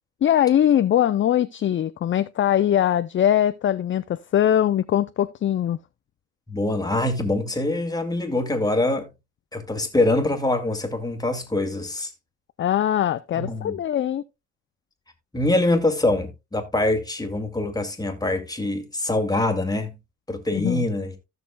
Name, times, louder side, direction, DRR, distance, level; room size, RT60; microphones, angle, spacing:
voice 1, 0.2-5.8 12.6-14.2 20.5-20.8, left 10 dB, 40° left, 0.5 m, -21 dB
voice 2, 6.5-9.1 9.5-12.1 13.3-13.8 15.3-19.9 20.3-21.1, left 2 dB, 10° left, 2.2 m, -24 dB
15.0 x 6.6 x 2.2 m
cardioid pair, 90°, 30 cm